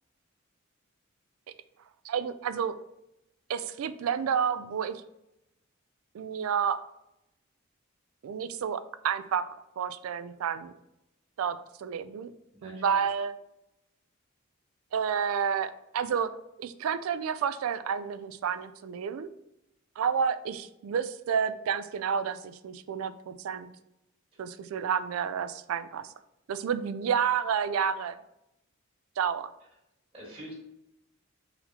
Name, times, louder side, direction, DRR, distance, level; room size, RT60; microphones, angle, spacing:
voice 1, 2.0-2.7 3.5-5.0 6.1-6.8 8.2-10.7 11.4-12.3 12.6-13.3 14.9-16.3 16.6-19.3 20.0-23.7 24.4-26.1 26.5-28.2 29.2-29.5, right 7 dB, 90° right, 13 dB, 0.3 m, -30 dB
voice 2, 12.5-13.0 30.1-30.5, right 1 dB, 30° right, -8 dB, 1.6 m, -45 dB
4.1 x 4.1 x 2.8 m, 0.86 s
head